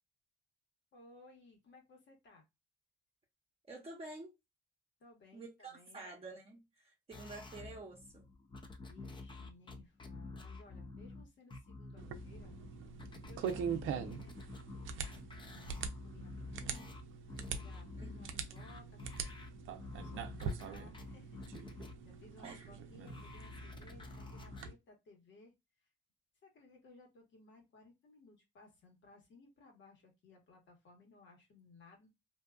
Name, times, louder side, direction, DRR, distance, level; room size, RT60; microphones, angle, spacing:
voice 1, 0.9-2.4 5.0-6.0 8.8-12.6 13.3-14.4 15.4-16.9 17.5-19.2 19.8-25.5 26.4-32.1, left 3 dB, 65° left, 1.4 m, -60 dB
voice 2, 3.7-4.3 5.3-8.3 18.0-18.5 22.4-22.7, right 2 dB, 30° right, 0.8 m, -49 dB
sound 1, 7.1-22.7 23.1-24.7, left 3 dB, 25° left, 0.6 m, -49 dB
sound 2, 12.0-24.7, right 6 dB, 80° right, 0.5 m, -43 dB
2.7 x 2.3 x 2.2 m
cardioid pair, 90°, 20 cm